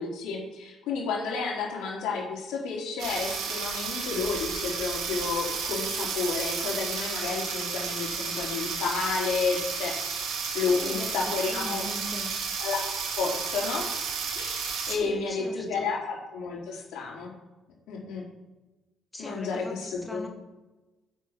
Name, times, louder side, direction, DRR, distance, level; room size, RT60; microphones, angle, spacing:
voice 1, 0.0-10.0 10.3-11.8 12.6-12.8 13.2-14.0 14.3-17.3 17.9-18.3 19.2-20.3, left 4 dB, 85° left, -2 dB, 4.0 m, -31 dB
sound 1, 3.0-15.0, right 5 dB, 75° right, 2.3 m, -32 dB
voice 2, 10.8-12.3 14.9-15.9 19.1-20.3, left 1 dB, 10° left, 2 dB, 1.6 m, -39 dB
9.0 x 7.4 x 5.9 m, 1.1 s
cardioid pair, 120°, 0 cm